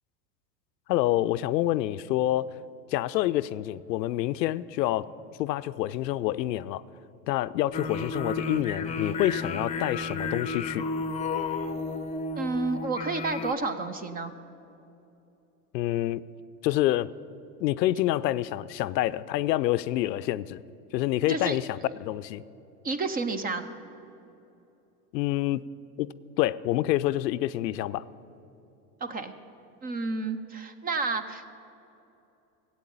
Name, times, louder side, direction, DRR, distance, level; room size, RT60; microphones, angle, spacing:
voice 1, 0.9-2.5 2.9-5.1 5.4-6.8 7.3-10.8 15.7-16.2 16.6-17.1 17.6-20.6 20.9-22.4 25.1-25.6 26.0-26.1 26.4-28.0, left 15 dB, 80° left, 16 dB, 0.6 m, -27 dB
sound 1, 7.7-13.5, left 3 dB, 15° left, 0.7 m, -32 dB
voice 2, 12.4-14.3 21.3-21.6 22.8-23.7 29.0-29.3 29.8-31.4, right 3 dB, 20° right, 11 dB, 0.5 m, -30 dB
14.5 x 8.4 x 8.4 m, 2.8 s
hypercardioid pair, 110°, 50 cm